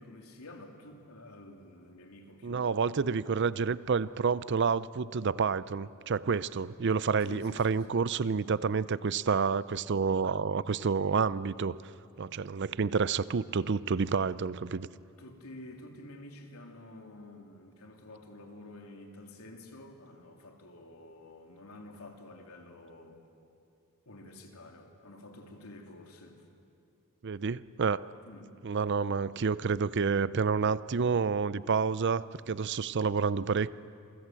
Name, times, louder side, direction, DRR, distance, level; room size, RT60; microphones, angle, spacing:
voice 1, 0.0-3.0 7.2-8.0 15.2-23.2 24.0-26.4 28.2-28.5, left 1 dB, 90° left, 3 dB, 3.2 m, -49 dB
voice 2, 2.4-11.8 12.2-14.9 27.2-28.0 28.6-33.7, right 5 dB, 55° right, 17 dB, 0.5 m, -29 dB
27.5 x 24.0 x 7.7 m, 2.5 s
head